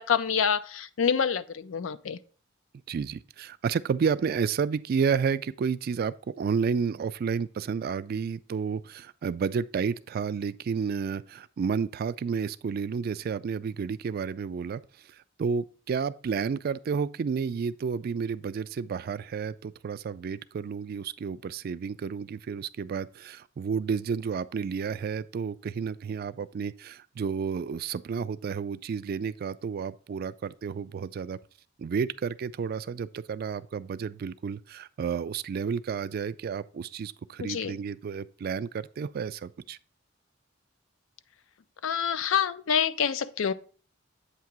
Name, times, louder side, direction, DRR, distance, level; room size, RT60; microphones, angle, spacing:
voice 1, 0.0-2.2 37.4-37.8 41.8-43.5, left 7 dB, 90° left, 0.4 m, -27 dB
voice 2, 2.9-14.8 15.1-31.4 31.8-39.8, right 6 dB, 50° right, 0.3 m, -31 dB
8.2 x 2.8 x 5.9 m
head